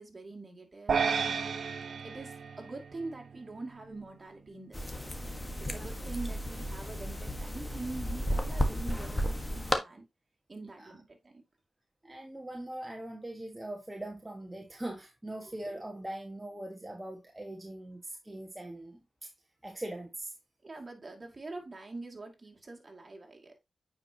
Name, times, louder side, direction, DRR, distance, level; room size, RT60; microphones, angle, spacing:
voice 1, 0.0-1.4 2.0-5.1 5.6-10.0 10.5-11.4 15.5-15.6 20.6-23.6, right 3 dB, 35° right, 2.2 m, -44 dB
sound 1, 0.9-3.4, right 6 dB, 70° right, 0.7 m, -32 dB
sound 2, 4.7-9.8, equal, 15° left, 1.3 m, -33 dB
voice 2, 12.0-19.3 19.6-20.3, right 1 dB, 15° right, 1.4 m, -41 dB
8.6 x 4.8 x 2.8 m
cardioid pair, 60°, 0 cm